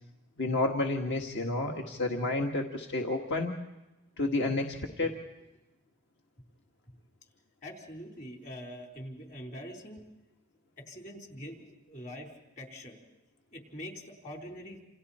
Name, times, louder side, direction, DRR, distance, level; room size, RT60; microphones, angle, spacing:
voice 1, 0.4-3.5 4.2-5.2, left 2 dB, 55° left, 2 dB, 1.8 m, -30 dB
voice 2, 7.6-10.0 10.8-13.0 13.5-14.8, equal, 40° left, 1 dB, 4.2 m, -44 dB
28.5 x 28.5 x 4.4 m, 1.0 s
head